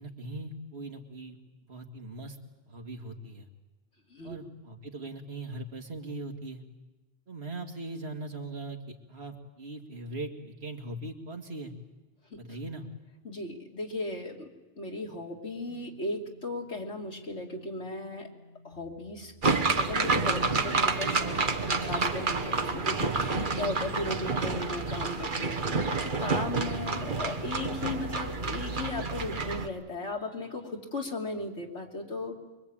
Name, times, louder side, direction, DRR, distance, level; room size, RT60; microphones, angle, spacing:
voice 1, 0.0-1.4 1.7-2.4 2.7-3.5 4.2-6.6 7.3-11.7 12.3-12.9, right 2 dB, 65° right, 2 dB, 2.4 m, -40 dB
voice 2, 13.2-14.5 14.8-18.3 18.6-19.3 19.7-32.4, left 2 dB, 90° left, 0 dB, 3.3 m, -36 dB
sound 1, 15.7-24.5, right 2 dB, 60° left, 6.3 m, -54 dB
sound 2, 19.4-29.7, right 4 dB, 50° right, 1.4 m, -29 dB
25.0 x 23.5 x 8.8 m, 1.2 s
omnidirectional pair, 1.1 m